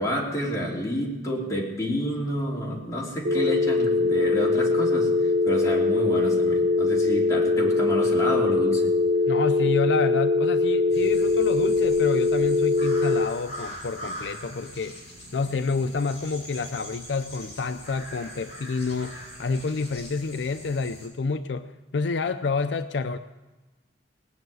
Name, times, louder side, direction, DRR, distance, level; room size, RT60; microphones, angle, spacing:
voice 1, 0.0-8.9, equal, 20° left, -4 dB, 3.3 m, -29 dB
sound 1, 3.2-13.3, left 3 dB, 55° right, 0.6 m, -22 dB
voice 2, 9.3-14.9 15.3-21.7 21.9-23.2, left 4 dB, 70° left, 9 dB, 0.5 m, -28 dB
sound 2, 10.9-21.1, equal, 35° left, 5.7 m, -42 dB
19.0 x 6.5 x 9.3 m, 1.2 s
head